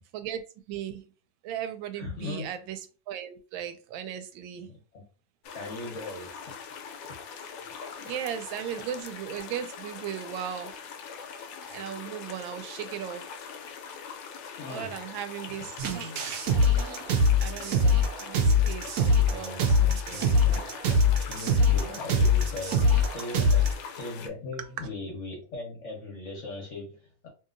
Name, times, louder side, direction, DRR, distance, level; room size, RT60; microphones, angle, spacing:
voice 1, 0.7-1.0 1.4-4.7 8.0-10.7 11.6-13.3 14.7-15.8 17.4-20.6 23.3-23.7, right 10 dB, 90° right, 1.3 m, -37 dB
voice 2, 1.9-2.5 4.6-5.0 5.5-6.5 14.6-15.0 19.2-20.7 21.1-23.7 24.0-27.3, left 2 dB, 55° left, 0.9 m, -39 dB
sound 1, 5.4-24.3, left 6 dB, 85° left, 1.3 m, -42 dB
sound 2, 15.8-23.7, left 2 dB, 75° right, 0.8 m, -23 dB
2.9 x 2.8 x 2.5 m
omnidirectional pair, 2.1 m